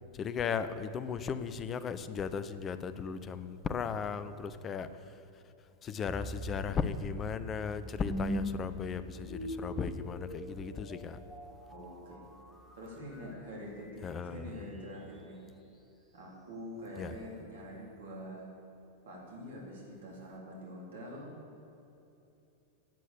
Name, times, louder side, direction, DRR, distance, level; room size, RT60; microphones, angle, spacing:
voice 1, 0.1-4.9 5.8-11.2 14.0-14.6 17.0-17.1, left 6 dB, 25° left, 13 dB, 0.8 m, -36 dB
sound 1, 6.1-15.2, equal, ahead, 2.2 m, -42 dB
voice 2, 11.7-12.2 12.7-15.4 16.1-18.5 19.0-21.3, equal, 60° right, -3 dB, 4.0 m, -45 dB
17.0 x 8.6 x 7.0 m, 2.8 s
figure-of-eight pair, 90°, 0 cm